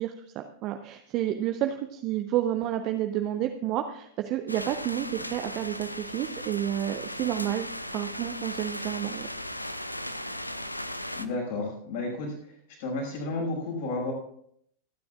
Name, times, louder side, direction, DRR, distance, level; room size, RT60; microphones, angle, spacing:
voice 1, 0.0-9.3, right 12 dB, 40° right, 6 dB, 0.7 m, -30 dB
sound 1, 4.5-11.3, left 1 dB, 85° left, 0.6 m, -37 dB
voice 2, 11.2-12.5 12.8-14.1, left 2 dB, 55° left, 0 dB, 5.9 m, -32 dB
27.5 x 9.6 x 2.5 m, 0.69 s
figure-of-eight pair, 90°, 0 cm